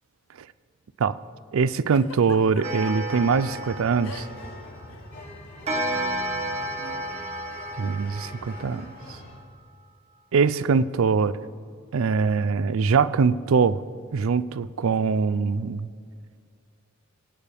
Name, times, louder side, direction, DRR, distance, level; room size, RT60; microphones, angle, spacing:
voice 1, 1.5-4.3 7.8-8.9 10.3-11.4 11.9-13.8 14.1-15.9, right 5 dB, 70° right, 17 dB, 0.4 m, -22 dB
Giggle, 1.9-3.2 4.0-4.5 4.8-5.0 6.0-6.2, left 4 dB, 80° left, 0.8 m, -42 dB
Clock, 2.6-4.9 5.7-9.1, right 1 dB, 30° right, 1.5 m, -32 dB
sound 1, 3.1-9.4, left 1 dB, 55° left, 2.8 m, -43 dB
23.5 x 9.1 x 3.4 m, 2.1 s
head